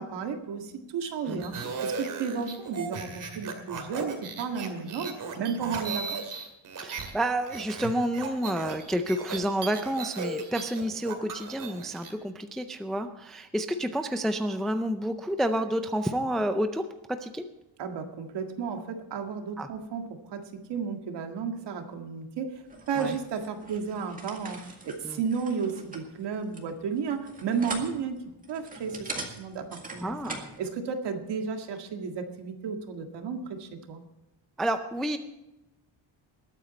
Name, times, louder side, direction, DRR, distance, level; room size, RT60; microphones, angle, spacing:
voice 1, 0.0-1.5 1.8-6.2 17.8-20.4 20.7-24.6 24.9-28.2 28.5-30.1 30.6-34.0, right 6 dB, 60° right, 5 dB, 2.0 m, -33 dB
sound 1, 1.3-7.1 7.4-12.1, right 4 dB, 45° right, 2.4 m, -37 dB
voice 2, 6.8-17.4 19.6-19.7 23.0-23.1 25.0-25.2 30.0-30.5 34.6-35.2, right 1 dB, ahead, 8 dB, 0.4 m, -29 dB
sound 2, 22.7-30.6, right 3 dB, 15° right, 1.9 m, -42 dB
21.0 x 9.1 x 4.3 m, 0.94 s
cardioid pair, 175°, 47 cm